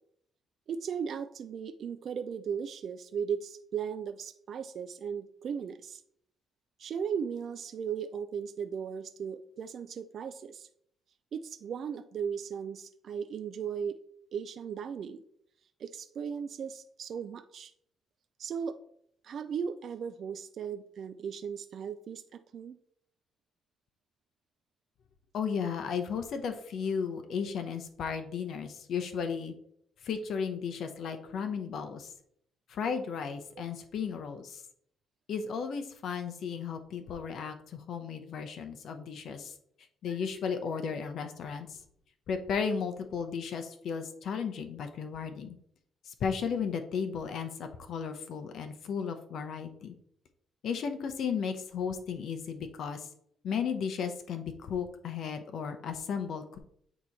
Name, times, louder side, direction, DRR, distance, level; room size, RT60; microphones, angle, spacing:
voice 1, 0.7-6.0 6.8-10.7 11.3-14.0 14.3-15.2 15.8-17.7 18.4-18.8 19.2-22.8, right 7 dB, 60° right, 9 dB, 0.3 m, -37 dB
voice 2, 25.3-29.5 30.0-32.1 32.7-34.6 35.3-39.5 40.0-41.8 42.3-45.6 46.0-49.9 50.6-53.1 53.4-56.6, left 6 dB, 70° left, 7 dB, 0.7 m, -34 dB
8.5 x 3.0 x 4.1 m, 0.68 s
cardioid pair, 90°, 0 cm